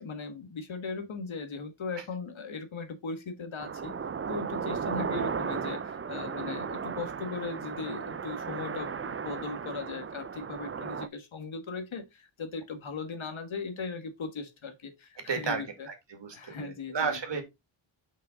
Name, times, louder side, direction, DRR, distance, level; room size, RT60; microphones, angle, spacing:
voice 1, 0.0-3.9 4.3-15.9 16.3-17.2, left 4 dB, 70° left, 1.5 m, -38 dB
sound 1, 3.6-11.1, right 6 dB, 30° right, 0.4 m, -35 dB
voice 2, 15.3-17.4, right 5 dB, 60° right, 2.2 m, -33 dB
6.1 x 5.6 x 3.8 m
wide cardioid pair, 135°, 49 cm